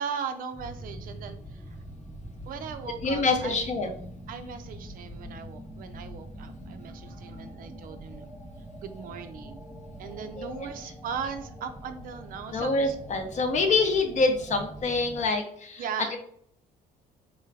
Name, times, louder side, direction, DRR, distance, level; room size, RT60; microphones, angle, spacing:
voice 1, 0.0-1.8 2.5-3.7 4.3-8.3 8.8-9.7 10.0-12.9 15.8-16.1, right 7 dB, 55° right, 9 dB, 0.4 m, -38 dB
sound 1, 0.5-15.3, equal, 5° right, 0.5 m, -43 dB
voice 2, 3.0-3.9 10.4-10.7 12.5-16.2, left 3 dB, 45° left, 5 dB, 0.6 m, -26 dB
3.8 x 2.3 x 3.3 m, 0.64 s
cardioid pair, 110°, 17 cm